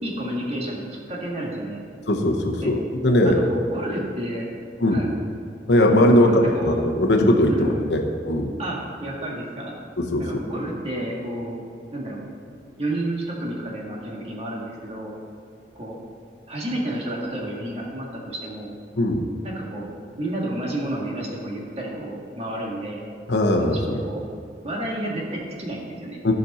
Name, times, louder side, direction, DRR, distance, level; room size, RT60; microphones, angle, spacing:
voice 1, 0.0-1.8 2.6-2.7 3.2-4.5 4.9-5.1 6.1-7.1 7.5-7.9 8.6-9.8 10.2-11.6 11.9-12.2 12.8-15.2 15.8-16.0 16.5-18.7 19.4-19.9 20.2-23.0 23.6-24.2 24.6-26.2, right 1 dB, 35° right, -3 dB, 1.8 m, -30 dB
voice 2, 2.1-3.4 4.8-5.1 5.7-8.5 10.0-10.3 19.0-19.2 23.3-24.0 26.2-26.3, left 1 dB, 70° left, 2 dB, 1.0 m, -19 dB
14.5 x 5.3 x 4.2 m, 2.3 s
head